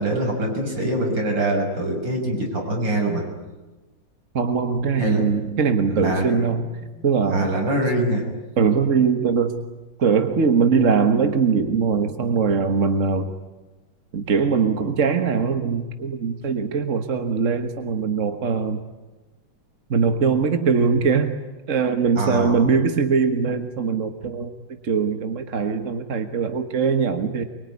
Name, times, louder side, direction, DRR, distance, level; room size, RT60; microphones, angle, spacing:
voice 1, 0.0-3.2 5.0-5.2 6.0-6.4 7.3-8.2 22.2-22.6, right 1 dB, 55° right, 1 dB, 6.9 m, -24 dB
voice 2, 4.3-6.7 7.0-7.6 8.6-9.6 10.0-13.3 14.1-18.8 19.9-21.3 21.7-24.5 24.8-27.4, right 5 dB, 40° right, 7 dB, 1.5 m, -21 dB
24.0 x 24.0 x 9.8 m, 1.1 s
omnidirectional pair, 2.3 m